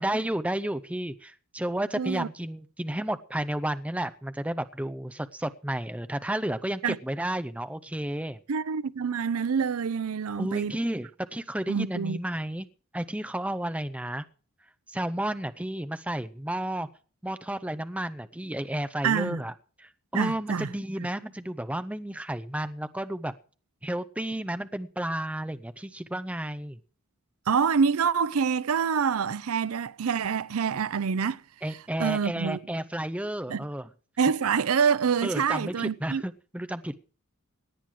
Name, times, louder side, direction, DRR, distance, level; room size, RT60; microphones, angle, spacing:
voice 1, 0.0-8.4 10.4-12.7 12.9-14.2 14.9-16.9 17.2-19.5 19.8-23.3 23.8-26.8 31.6-33.9 35.2-37.0, right 1 dB, 5° right, 0.6 m, -32 dB
voice 2, 2.0-2.3 6.8-7.0 8.5-10.8 11.7-12.2 19.0-19.4 20.1-20.7 27.5-31.4 32.0-32.6 33.5-33.7 34.2-36.2, right 6 dB, 75° right, 0.5 m, -26 dB
18.0 x 9.1 x 4.9 m
head